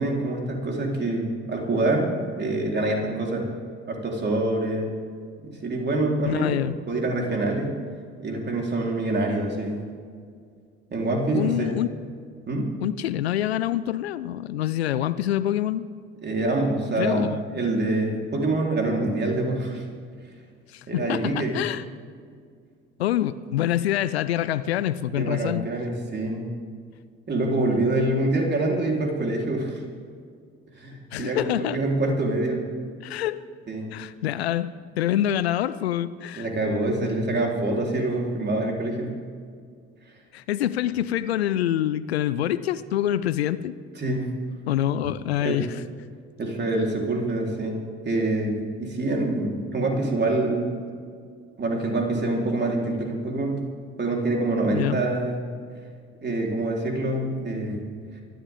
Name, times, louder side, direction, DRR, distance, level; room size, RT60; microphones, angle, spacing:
voice 1, 0.0-3.4 3.9-4.9 5.4-6.6 6.9-7.7 8.2-9.8 10.9-11.8 12.5-12.7 16.2-19.8 20.9-21.6 25.2-26.4 27.3-29.8 30.8-32.6 33.7-33.9 36.4-39.1 44.0-44.3 45.4-45.7 46.4-50.8 51.6-53.6 54.0-55.4 56.2-57.9, right 2 dB, 35° right, 0 dB, 4.0 m, -26 dB
voice 2, 6.2-6.8 11.3-11.9 12.8-15.9 17.0-17.6 20.7-21.8 23.0-25.7 31.1-31.8 33.0-33.4 33.9-36.5 40.3-43.7 44.7-45.8 54.7-55.0, left 12 dB, 85° left, 16 dB, 0.6 m, -26 dB
24.0 x 13.0 x 3.7 m, 2.1 s
hypercardioid pair, 60°, 31 cm